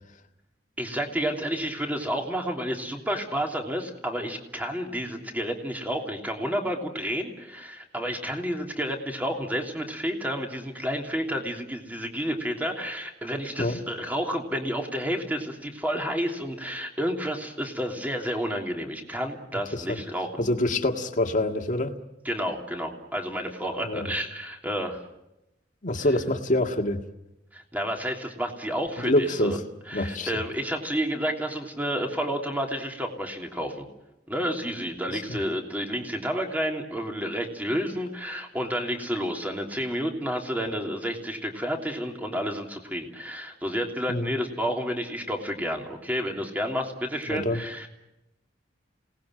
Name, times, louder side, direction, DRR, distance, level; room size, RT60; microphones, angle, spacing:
voice 1, 0.8-20.4 22.2-25.0 27.5-29.6 29.9-33.9 34.3-47.9, equal, 10° right, 2 dB, 3.0 m, -30 dB
voice 2, 19.5-20.0 20.4-21.9 23.8-24.1 25.8-27.0 29.0-29.6 29.9-30.4 35.3-35.4 44.1-44.3 47.3-47.6, left 1 dB, 45° left, 4 dB, 1.9 m, -26 dB
27.5 x 19.0 x 7.7 m, 0.90 s
head